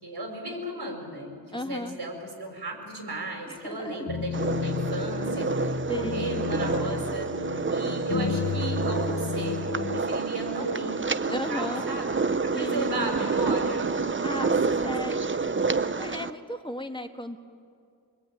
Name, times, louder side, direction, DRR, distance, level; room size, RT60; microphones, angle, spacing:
voice 1, 0.0-7.3 7.7-13.9 14.3-14.5 14.8-15.4, right 2 dB, 75° right, 2 dB, 5.7 m, -35 dB
voice 2, 1.5-2.0 3.5-4.1 5.9-6.3 11.3-11.9 12.5-13.1 14.2-15.2 16.0-17.4, left 1 dB, 10° left, 5 dB, 1.7 m, -35 dB
sound 1, 4.1-10.0, left 6 dB, 60° left, 1.0 m, -32 dB
sound 2, 4.3-16.3, right 4 dB, 30° right, 0.7 m, -29 dB
25.0 x 22.5 x 9.3 m, 2.3 s
wide cardioid pair, 75°, 39 cm